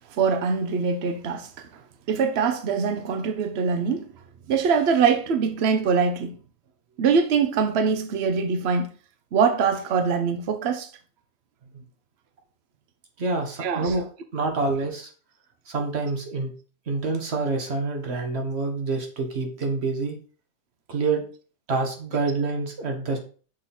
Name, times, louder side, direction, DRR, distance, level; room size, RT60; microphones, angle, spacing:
voice 1, 0.2-1.7 2.1-4.1 4.5-6.4 7.0-8.9 9.3-10.9 13.6-13.9, right 5 dB, 80° right, 0.5 m, -23 dB
voice 2, 13.2-14.0 14.3-15.1 15.7-16.5 16.9-20.1 20.9-21.2 21.7-23.2, right 3 dB, 40° right, 1.3 m, -27 dB
6.2 x 3.8 x 4.1 m
omnidirectional pair, 1.9 m